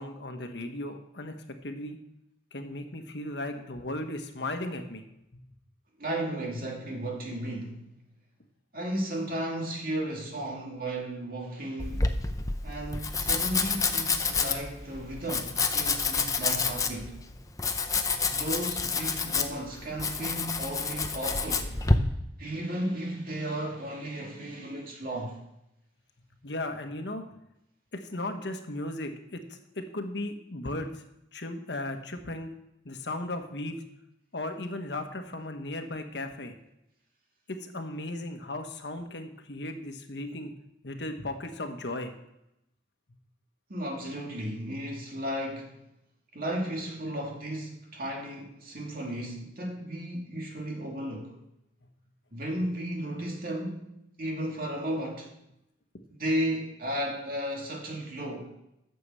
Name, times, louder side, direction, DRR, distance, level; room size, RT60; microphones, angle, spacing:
voice 1, 0.0-2.0 2.5-5.0 5.3-5.4 26.4-27.2 27.9-31.0 31.3-32.5 32.8-33.8 34.3-36.5 37.5-40.5 40.8-42.1, left 1 dB, 70° left, 1.3 m, -36 dB
voice 2, 6.0-7.9 8.7-12.2 12.6-17.2 18.4-21.8 22.4-25.4 43.7-45.8 46.3-51.4 52.3-53.8 54.2-55.3 56.2-58.5, right 1 dB, 50° right, 2.6 m, -34 dB
Domestic sounds home sounds, 11.8-22.0, left 4 dB, 20° left, 0.7 m, -29 dB
9.9 x 6.9 x 7.7 m
head